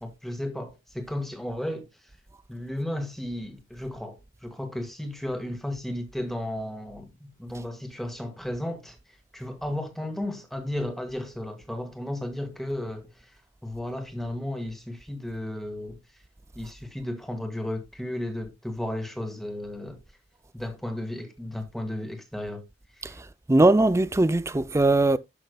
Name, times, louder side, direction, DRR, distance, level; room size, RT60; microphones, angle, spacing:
voice 1, 0.0-1.9 2.5-9.0 9.3-13.4 13.6-16.0 16.5-20.0 20.5-22.6 23.0-23.2, left 1 dB, ahead, 1.5 m, -34 dB
voice 2, 23.5-25.2, right 2 dB, 15° right, 0.4 m, -20 dB
11.5 x 6.2 x 2.2 m
head